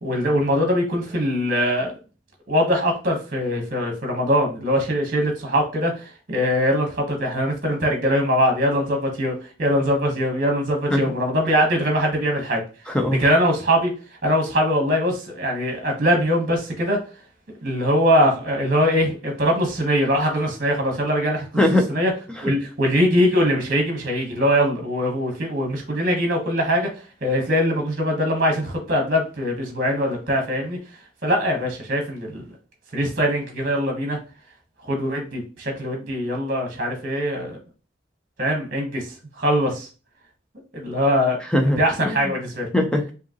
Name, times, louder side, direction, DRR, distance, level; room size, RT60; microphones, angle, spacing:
voice 1, 0.0-1.9 2.5-9.3 9.6-12.6 13.2-13.9 14.2-17.0 17.6-21.6 21.9-22.1 22.4-26.9 27.2-30.8 31.2-32.4 32.9-34.2 34.8-37.6 38.4-39.9 40.7-41.4 41.8-42.7, equal, 45° right, 2 dB, 1.2 m, -22 dB
voice 2, 12.9-13.2 21.6-21.9 41.4-42.1 42.7-43.1, left 1 dB, 5° left, 3 dB, 0.6 m, -20 dB
4.9 x 2.8 x 3.0 m, 0.34 s
head